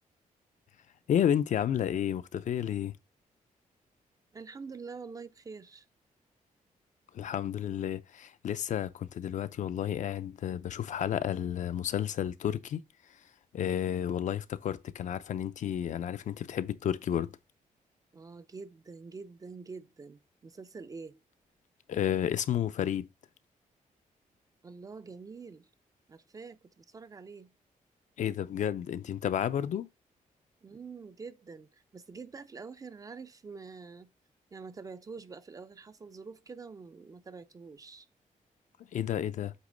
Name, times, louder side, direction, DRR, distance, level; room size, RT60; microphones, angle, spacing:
voice 1, 1.1-3.0 7.1-12.8 13.5-17.3 21.9-23.1 28.2-29.9 38.9-39.5, left 9 dB, 60° left, 0.5 m, -31 dB
voice 2, 4.3-5.9 18.1-21.2 24.6-25.7 26.1-27.5 30.6-34.1 34.5-38.1, right 4 dB, 25° right, 0.4 m, -46 dB
8.2 x 3.0 x 5.0 m
wide cardioid pair, 165°, 14 cm